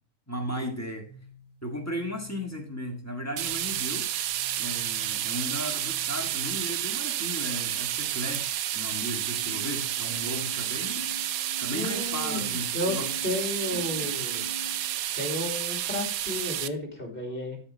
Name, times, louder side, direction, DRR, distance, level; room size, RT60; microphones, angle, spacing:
voice 1, 0.3-1.1 1.6-4.1 4.6-11.0 11.6-13.1 13.7-14.3, equal, 10° left, 1 dB, 1.7 m, -36 dB
sound 1, 1.0-7.0 9.0-15.0, left 3 dB, 25° right, 3.2 m, -47 dB
sound 2, 3.4-16.7, right 12 dB, 70° right, 1.0 m, -30 dB
voice 2, 11.7-13.0 13.2-14.4 15.2-17.6, left 2 dB, 35° left, 2 dB, 2.9 m, -33 dB
13.0 x 5.0 x 4.4 m, 0.40 s
omnidirectional pair, 1.6 m